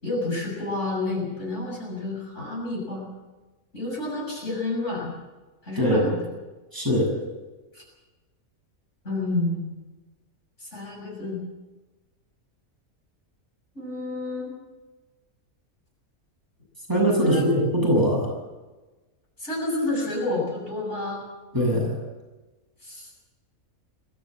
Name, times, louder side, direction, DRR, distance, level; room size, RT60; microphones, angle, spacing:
voice 1, 0.0-3.1 3.7-5.1 5.6-6.3 7.7-7.8 9.0-9.8 10.6-11.4 13.8-14.5 17.2-17.5 19.4-21.3 22.8-23.1, left 2 dB, 55° left, -2 dB, 7.5 m, -29 dB
voice 2, 5.8-6.1 6.7-7.1 16.9-18.3 21.5-21.9, equal, 15° right, -1 dB, 6.9 m, -21 dB
22.5 x 15.5 x 7.6 m, 1.2 s
omnidirectional pair, 1.5 m